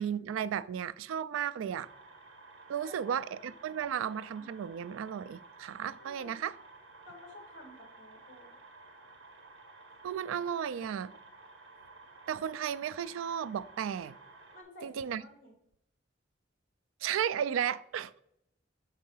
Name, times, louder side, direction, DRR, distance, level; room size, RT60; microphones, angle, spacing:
voice 1, 0.0-1.9 2.7-6.5 10.0-11.1 12.3-14.1 14.8-15.2 17.0-18.2, right 8 dB, 85° right, 0.3 m, -34 dB
sound 1, 1.7-14.6, right 3 dB, 65° right, 1.2 m, -54 dB
voice 2, 6.0-6.4 7.1-8.5 14.5-15.5, left 1 dB, 45° left, 2.0 m, -52 dB
5.4 x 3.7 x 5.5 m
head